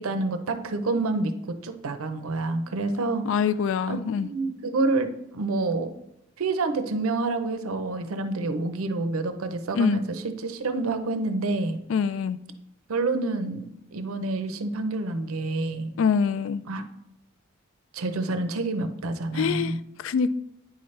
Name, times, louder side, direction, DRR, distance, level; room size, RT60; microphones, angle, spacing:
voice 1, 0.0-1.3 1.6-3.3 3.9-5.9 6.4-11.8 12.9-13.6 13.9-15.9 16.7-16.8 17.9-19.8, right 3 dB, 90° right, 0.6 m, -28 dB
voice 2, 3.2-4.3 9.7-10.0 11.9-12.4 16.0-16.6 19.3-20.4, left 6 dB, 70° left, 0.3 m, -25 dB
9.0 x 5.6 x 3.2 m
head